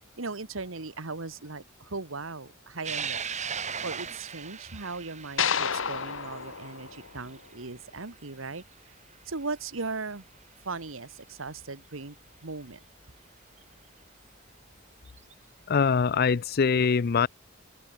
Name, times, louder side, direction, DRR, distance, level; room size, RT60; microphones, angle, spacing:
voice 1, 0.2-3.2 3.8-8.6 9.2-10.2 10.6-12.1 12.4-12.8, right 3 dB, 85° right, 1.7 m, -38 dB
sound 1, 2.8-9.5 10.0-10.1 11.3-11.4 13.6-13.7 15.1-15.3, right 6 dB, 35° right, 4.6 m, -38 dB
sound 2, 5.4-7.7, left 7 dB, 70° left, 1.6 m, -31 dB
voice 2, 15.7-17.3, left 5 dB, 50° left, 0.5 m, -23 dB
open air
head